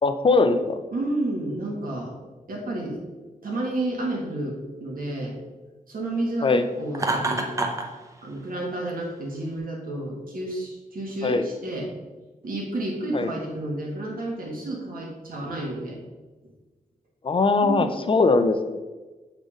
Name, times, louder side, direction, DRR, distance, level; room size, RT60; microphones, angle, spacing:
voice 1, 0.0-0.8 6.4-6.6 11.2-11.5 13.1-13.3 17.2-18.8, left 3 dB, 35° left, 9 dB, 0.4 m, -21 dB
voice 2, 0.9-2.1 2.5-3.0 3.4-5.4 5.9-7.5 8.2-11.9 12.4-16.0 17.6-18.0, right 1 dB, 75° right, -1 dB, 1.6 m, -31 dB
Laughter, 6.9-7.9, right 2 dB, 20° right, 0.7 m, -26 dB
7.2 x 4.0 x 5.0 m, 1.2 s
wide cardioid pair, 180°, 15 cm